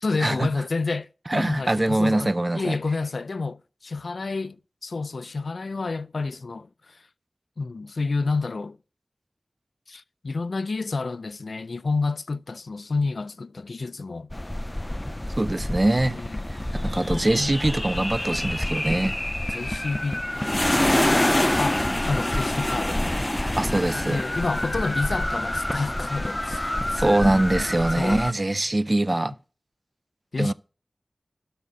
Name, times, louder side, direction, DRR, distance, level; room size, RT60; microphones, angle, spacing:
voice 1, 0.0-4.6 4.8-7.0 7.6-8.8 9.9-14.3 16.1-16.5 17.1-17.5 19.5-20.7 21.6-23.2 23.9-27.4 27.9-28.2 30.3-30.5, left 3 dB, 75° left, 0.4 m, -29 dB
voice 2, 1.3-2.8 15.4-16.2 16.5-16.6 16.8-19.2 23.6-24.2 27.0-29.3 30.4-30.5, right 1 dB, 30° right, 0.5 m, -23 dB
sound 1, 14.3-28.3, left 1 dB, 20° left, 0.5 m, -26 dB
12.0 x 4.1 x 6.5 m
wide cardioid pair, 65°, 0 cm